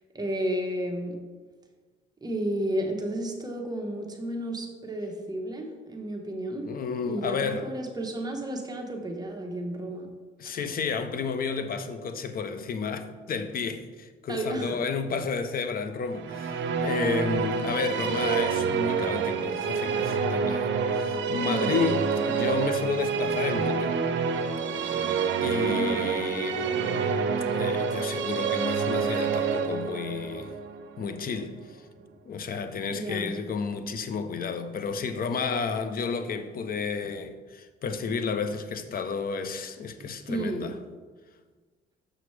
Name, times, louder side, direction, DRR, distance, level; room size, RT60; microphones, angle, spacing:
voice 1, 0.1-1.2 2.2-6.7 7.1-10.1 10.4-10.5 14.3-14.8 21.5-21.8 25.6-26.1 32.9-33.3 40.3-40.7, right 1 dB, 20° right, 1.0 m, -32 dB
voice 2, 6.6-7.7 10.4-24.0 25.4-30.6 31.0-31.8 32.2-40.7, left 5 dB, 45° left, 0.6 m, -31 dB
Musical instrument, 16.1-31.5, right 6 dB, 70° right, 0.6 m, -28 dB
6.3 x 6.0 x 3.2 m
cardioid pair, 90°, 20 cm